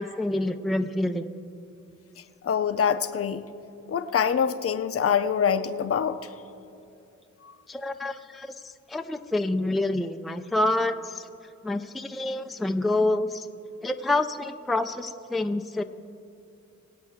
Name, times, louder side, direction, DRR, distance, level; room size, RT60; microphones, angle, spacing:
voice 1, 0.0-1.3 7.7-11.3 11.6-13.5 13.8-15.8, left 2 dB, ahead, 7 dB, 0.4 m, -27 dB
voice 2, 2.4-3.5 3.9-6.3 7.4-7.5, left 7 dB, 50° left, 11 dB, 0.6 m, -25 dB
22.5 x 8.4 x 3.6 m, 2.7 s
cardioid pair, 95°, 30 cm